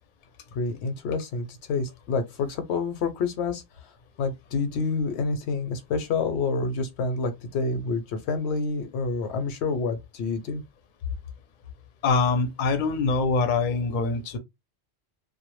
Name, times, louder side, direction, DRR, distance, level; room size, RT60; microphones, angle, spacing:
voice 1, 0.5-3.9 4.2-10.6, left 4 dB, 85° left, 0.8 m, -28 dB
voice 2, 12.0-14.4, left 4 dB, 55° left, 0.6 m, -24 dB
2.1 x 2.1 x 3.0 m
omnidirectional pair, 1.1 m